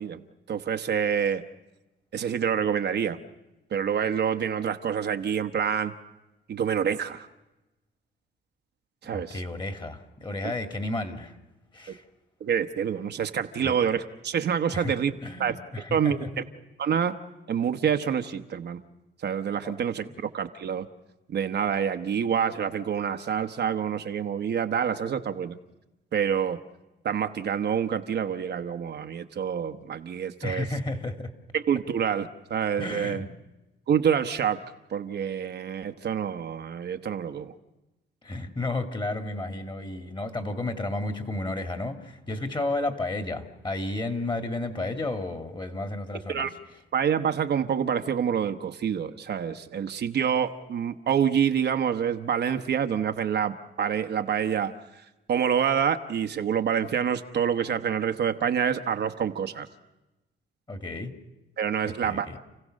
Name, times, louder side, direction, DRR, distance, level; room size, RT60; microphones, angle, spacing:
voice 1, 0.0-1.4 2.1-3.2 3.7-5.9 6.5-7.3 9.0-9.4 10.4-10.5 12.4-15.1 15.4-15.6 15.9-16.3 16.8-17.2 17.5-18.8 19.2-20.9 21.3-25.6 26.1-26.6 27.0-30.7 31.5-33.2 33.9-34.6 34.9-37.5 46.3-46.5 46.9-55.0 55.3-59.7 61.6-62.3, right 8 dB, 60° right, 7 dB, 1.1 m, -27 dB
voice 2, 9.1-11.4 11.7-12.0 13.6-13.8 14.7-14.9 15.2-16.3 30.4-31.3 32.8-33.3 38.2-46.5 60.7-61.1 61.8-62.4, left 2 dB, 25° left, 7 dB, 2.2 m, -32 dB
29.5 x 16.0 x 6.5 m, 1.0 s
cardioid pair, 90°, 20 cm